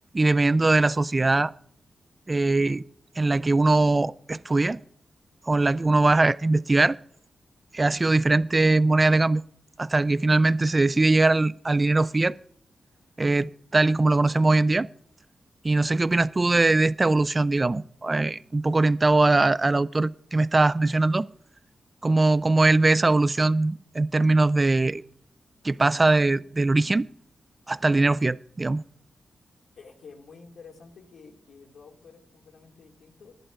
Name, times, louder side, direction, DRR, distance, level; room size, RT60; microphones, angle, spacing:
voice 1, 0.1-1.5 2.3-2.8 3.2-4.8 5.5-7.0 7.7-9.4 9.8-12.4 13.2-14.9 15.6-21.3 22.0-25.0 25.6-27.1 27.7-28.8, right 2 dB, 35° right, 0.4 m, -21 dB
voice 2, 29.8-33.3, left 5 dB, 80° left, 2.0 m, -49 dB
18.5 x 11.0 x 2.5 m
cardioid pair, 50°, 0 cm